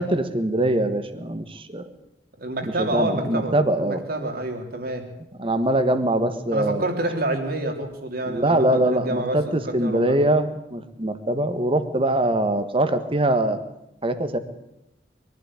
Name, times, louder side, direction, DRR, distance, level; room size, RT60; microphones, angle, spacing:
voice 1, 0.0-1.8 2.6-4.0 5.4-6.9 8.3-13.6 14.0-14.4, right 1 dB, 30° right, 10 dB, 1.6 m, -23 dB
voice 2, 2.4-5.1 6.5-10.2, right 2 dB, 55° right, 5 dB, 3.2 m, -28 dB
22.5 x 12.0 x 9.9 m, 0.86 s
head